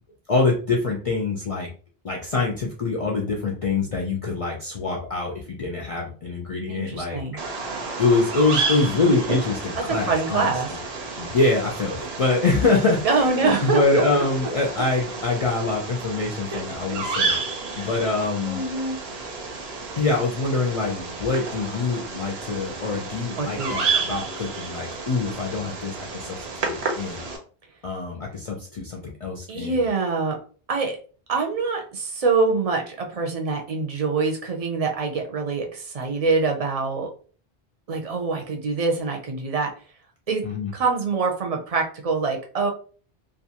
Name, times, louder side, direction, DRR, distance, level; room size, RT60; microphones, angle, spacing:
voice 1, 0.3-1.7 2.0-7.2 8.0-10.5 11.2-17.4 17.7-18.6 20.0-26.4 26.6-27.3 27.8-29.9 40.4-40.7, left 3 dB, 50° left, -1 dB, 0.4 m, -24 dB
voice 2, 6.7-7.4 9.9-10.7 13.0-13.8 14.4-14.5 16.5-16.6 16.9-17.0 17.7-17.9 18.4-19.0 23.4-23.8 29.5-30.4 30.7-31.0 31.3-37.1 37.9-39.7 40.3-40.4 40.7-42.7, right 4 dB, 45° right, 2 dB, 0.6 m, -25 dB
Bird vocalization bird call bird song, 7.4-27.4, right 4 dB, 85° right, 0.9 m, -31 dB
2.5 x 2.2 x 2.8 m, 0.40 s
omnidirectional pair, 1.0 m